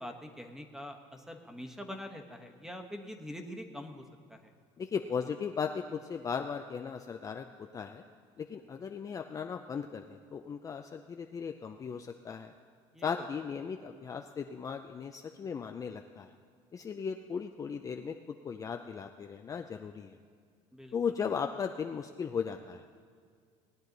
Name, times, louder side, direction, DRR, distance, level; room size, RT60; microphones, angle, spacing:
voice 1, 0.0-4.0 4.3-4.5 12.9-13.3 20.7-20.9, equal, 5° right, 5 dB, 1.2 m, -44 dB
voice 2, 4.8-7.4 7.7-8.0 8.4-12.5 13.0-16.3 16.7-20.1 20.9-22.8, left 6 dB, 30° left, 4 dB, 0.5 m, -37 dB
19.0 x 9.2 x 4.0 m, 2.1 s
cardioid pair, 115°, 12 cm